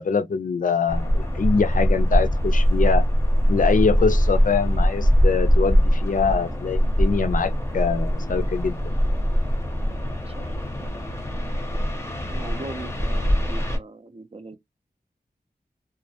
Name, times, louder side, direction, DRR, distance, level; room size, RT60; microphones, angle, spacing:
voice 1, 0.0-3.0 3.5-8.8, left 5 dB, 55° left, 0.4 m, -24 dB
sound 1, 0.9-13.8, equal, 15° left, 0.6 m, -22 dB
voice 2, 10.3-10.9 12.3-14.6, right 2 dB, 40° right, 0.4 m, -40 dB
2.2 x 2.1 x 2.7 m
wide cardioid pair, 75°, 16 cm